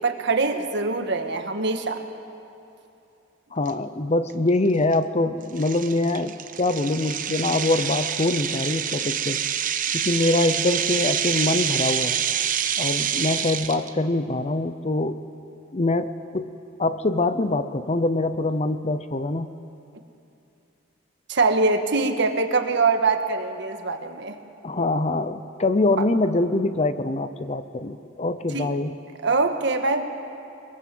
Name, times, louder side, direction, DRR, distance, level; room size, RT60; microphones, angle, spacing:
voice 1, 0.0-2.0 21.3-24.4 28.5-28.7 29.2-30.0, right 3 dB, 60° right, 6 dB, 1.6 m, -23 dB
voice 2, 3.5-9.4 9.9-12.2 12.8-15.2 15.7-16.5 16.8-19.5 24.6-28.9, left 2 dB, 35° left, 12 dB, 0.7 m, -24 dB
sound 1, 3.7-3.8 4.3-4.5 4.9-5.0 5.6-13.9, right 9 dB, 40° right, 0.9 m, -27 dB
22.5 x 22.0 x 7.8 m, 2.7 s
head